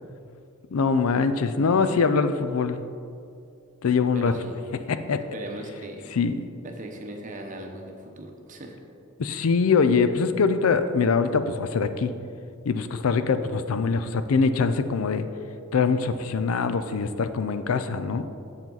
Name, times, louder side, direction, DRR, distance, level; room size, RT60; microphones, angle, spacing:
voice 1, 0.7-2.8 3.8-4.4 4.9-5.2 6.1-6.4 9.2-12.1 12.7-15.3 15.7-18.3, left 5 dB, 85° left, 10 dB, 0.4 m, -23 dB
voice 2, 4.1-4.7 5.3-6.1 6.6-8.8, right 1 dB, 35° right, 3 dB, 0.8 m, -38 dB
7.3 x 7.2 x 3.9 m, 2.5 s
head